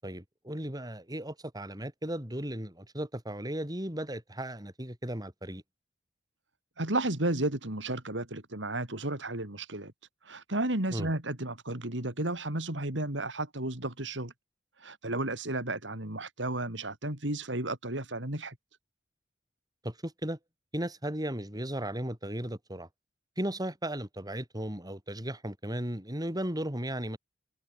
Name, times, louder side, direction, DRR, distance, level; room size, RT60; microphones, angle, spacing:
voice 1, 0.0-5.6 10.9-11.1 19.8-20.4 20.7-22.9 23.4-27.2, right 1 dB, 20° right, 6.0 m, -36 dB
voice 2, 6.8-9.9 10.2-14.3 14.8-18.6, right 2 dB, 85° right, 4.1 m, -33 dB
open air
head